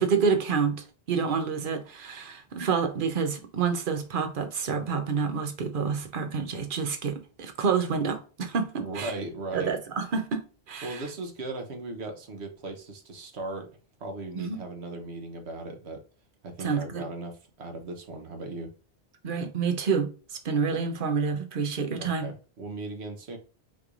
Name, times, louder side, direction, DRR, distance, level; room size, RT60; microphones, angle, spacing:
voice 1, 0.0-9.1 9.5-11.0 14.4-14.6 16.6-17.1 19.2-22.3, right 5 dB, 55° right, 0.9 m, -28 dB
voice 2, 8.8-9.7 10.8-13.7 14.0-16.0 16.4-18.7 22.0-23.4, right 2 dB, 85° right, 1.3 m, -37 dB
5.8 x 3.3 x 2.5 m
omnidirectional pair, 1.1 m